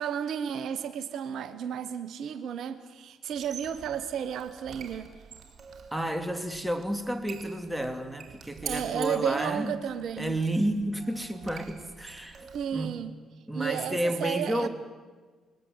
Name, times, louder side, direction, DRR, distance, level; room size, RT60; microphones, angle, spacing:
voice 1, 0.0-5.1 8.6-10.4 12.5-13.2 13.5-14.7, right 8 dB, 70° right, 0.9 m, -33 dB
Squeak, 3.3-12.9, right 7 dB, 55° right, 3.2 m, -46 dB
voice 2, 5.9-9.8 10.2-12.9 13.5-14.7, right 1 dB, 5° right, 2.5 m, -31 dB
21.0 x 20.0 x 7.9 m
hypercardioid pair, 50°, 0 cm